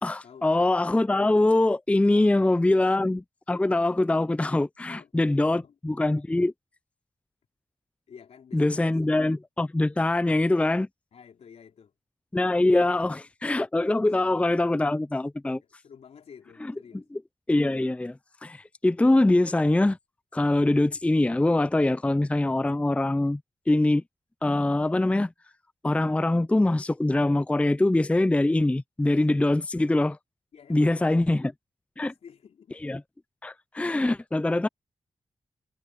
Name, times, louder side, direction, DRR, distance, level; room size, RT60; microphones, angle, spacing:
voice 1, 0.0-3.2 3.5-6.5 8.5-10.9 12.3-15.6 17.5-20.0 20.3-23.4 23.7-24.0 24.4-25.3 25.8-30.2 30.7-31.5 32.0-32.1 32.8-33.0 33.4-34.7, left 2 dB, 10° left, 0.4 m, -23 dB
voice 2, 4.8-5.8 8.1-9.4 11.1-11.9 12.8-13.0 15.6-17.1 30.5-31.4 32.0-32.8, left 7 dB, 85° left, 3.9 m, -51 dB
cardioid pair, 65°, 11 cm